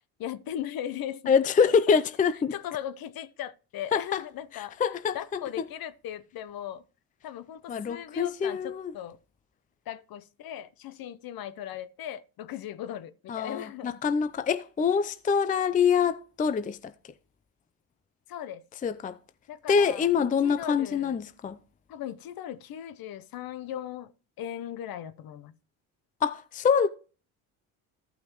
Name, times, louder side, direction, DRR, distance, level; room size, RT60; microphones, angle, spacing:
voice 1, 0.2-1.3 1.6-2.0 2.5-4.8 5.1-6.8 7.2-9.2 9.9-14.0 18.3-18.6 19.5-20.1 20.4-21.2 21.9-24.1 24.4-25.5, left 11 dB, 50° left, 0.8 m, -38 dB
voice 2, 1.3-2.5 3.9-4.2 4.5-5.4 7.7-8.9 13.3-16.9 18.8-19.2 19.7-21.6 26.2-26.9, left 6 dB, 20° left, 0.5 m, -25 dB
14.0 x 5.7 x 3.0 m
hypercardioid pair, 65°, 45 cm